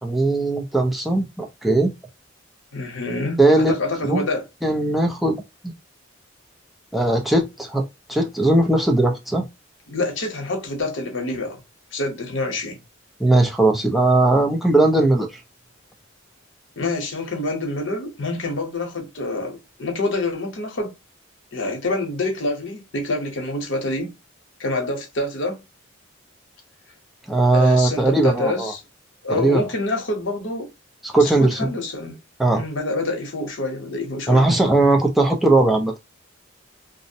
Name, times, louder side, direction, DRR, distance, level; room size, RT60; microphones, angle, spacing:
voice 1, 0.0-1.9 3.4-3.7 4.0-4.3 4.6-5.4 6.9-9.4 13.2-15.3 27.3-28.7 29.3-29.6 31.0-31.7 32.4-32.6 34.3-35.9, right 2 dB, ahead, 0.5 m, -18 dB
voice 2, 2.7-3.4 3.7-4.4 9.9-11.6 11.9-12.8 16.8-20.9 21.5-24.1 24.6-25.6 27.5-28.8 29.2-30.7 31.2-32.2 32.5-34.5, left 2 dB, 65° left, 0.8 m, -26 dB
2.6 x 2.0 x 2.6 m
head